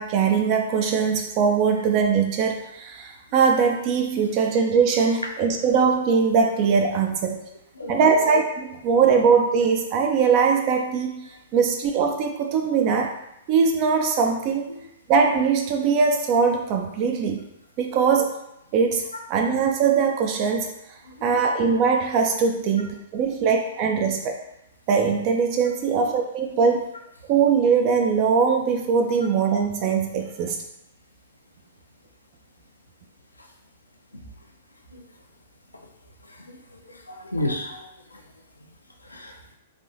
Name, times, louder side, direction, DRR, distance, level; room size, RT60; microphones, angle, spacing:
voice 1, 0.0-7.4 7.9-11.3 11.5-13.1 13.5-14.7 15.1-17.5 17.8-18.3 18.7-20.7 21.2-24.3 24.9-26.8 27.3-30.6, right 5 dB, 35° right, 3 dB, 0.3 m, -21 dB
voice 2, 7.8-8.2 14.7-14.8 34.9-35.0 36.3-36.4 36.9-37.8 38.1-38.2 39.0-39.4, left 1 dB, 85° left, 2 dB, 0.5 m, -32 dB
3.3 x 2.6 x 2.7 m, 0.83 s
figure-of-eight pair, 110°, 0 cm